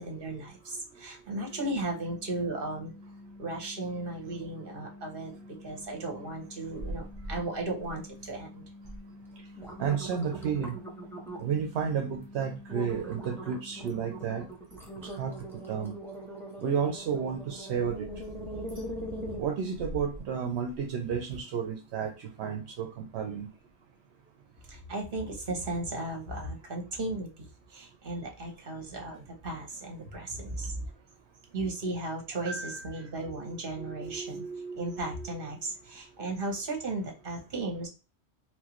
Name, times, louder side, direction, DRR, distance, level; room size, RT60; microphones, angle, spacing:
voice 1, 0.0-2.9 3.4-5.3 5.6-8.6 24.7-27.3 27.7-30.8 31.5-34.4 34.8-37.9, right 2 dB, 55° right, 2 dB, 1.2 m, -35 dB
sound 1, 1.3-14.5, left 2 dB, 65° left, 0.7 m, -50 dB
sound 2, 6.7-7.4 7.8-8.3 8.8-9.0 9.4-11.6 12.1-12.3 12.7-20.2 20.7-20.8, right 1 dB, ahead, 0.8 m, -40 dB
voice 2, 9.8-10.7 11.4-14.4 15.2-15.4 15.7-16.0 16.6-18.1 19.4-23.5 32.5-32.9 33.4-35.4, right 7 dB, 75° right, 3 dB, 0.8 m, -32 dB
4.4 x 2.0 x 3.0 m, 0.31 s
omnidirectional pair, 1.1 m